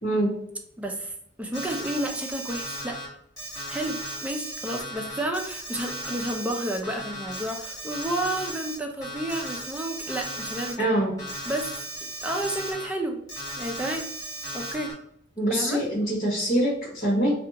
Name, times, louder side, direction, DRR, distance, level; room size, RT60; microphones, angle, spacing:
voice 1, 0.0-0.3 10.8-11.1 15.4-17.3, right 1 dB, 40° left, -11 dB, 1.0 m, -24 dB
voice 2, 0.8-3.0 3.7-10.8 11.4-11.7 12.2-13.2 13.6-14.1 14.5-14.9 15.5-15.8, right 1 dB, 10° right, 2 dB, 0.4 m, -31 dB
Alarm, 1.5-3.1 3.4-8.8 9.0-10.7 11.2-12.9 13.3-14.9, right 1 dB, 20° left, 1.3 m, -36 dB
2.7 x 2.4 x 2.6 m, 0.72 s
head